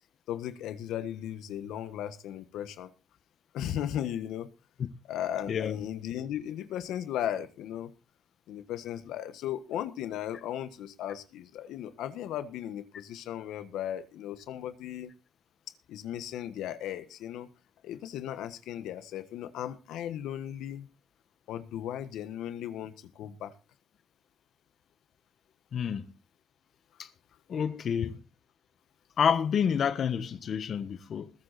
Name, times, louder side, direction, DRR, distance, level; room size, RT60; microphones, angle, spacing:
voice 1, 0.3-2.9 3.5-4.5 5.1-7.9 8.5-15.1 15.9-17.5 17.8-20.9 21.5-23.5, left 11 dB, 85° left, 1.5 m, -36 dB
voice 2, 5.5-5.8 25.7-26.1 27.5-28.2 29.2-31.3, left 7 dB, 60° left, 1.3 m, -28 dB
21.0 x 8.2 x 4.2 m
cardioid pair, 90°, 0 cm